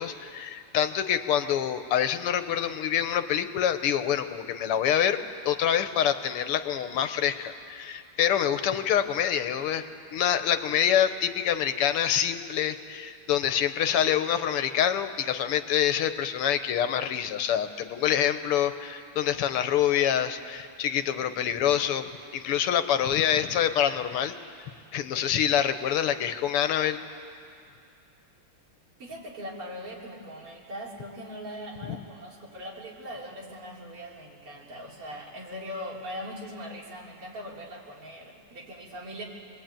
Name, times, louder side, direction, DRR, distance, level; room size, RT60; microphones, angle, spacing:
voice 1, 0.0-5.2 5.5-9.8 10.1-24.4 24.9-27.0, left 9 dB, 80° left, 10 dB, 1.9 m, -26 dB
voice 2, 29.0-39.2, equal, 80° right, -3 dB, 4.5 m, -40 dB
25.0 x 21.0 x 9.1 m, 2.4 s
omnidirectional pair, 2.4 m